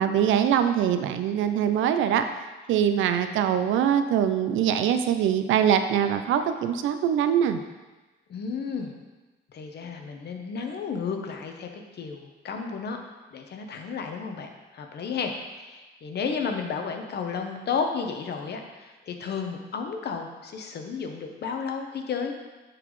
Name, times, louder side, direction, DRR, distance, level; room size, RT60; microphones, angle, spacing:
voice 1, 0.0-2.3 2.7-7.6, right 9 dB, 80° right, 9 dB, 0.5 m, -23 dB
voice 2, 8.3-8.9 9.5-13.0 13.3-22.3, left 5 dB, 55° left, 4 dB, 0.9 m, -32 dB
8.9 x 4.0 x 3.1 m, 1.2 s
cardioid pair, 90°, 20 cm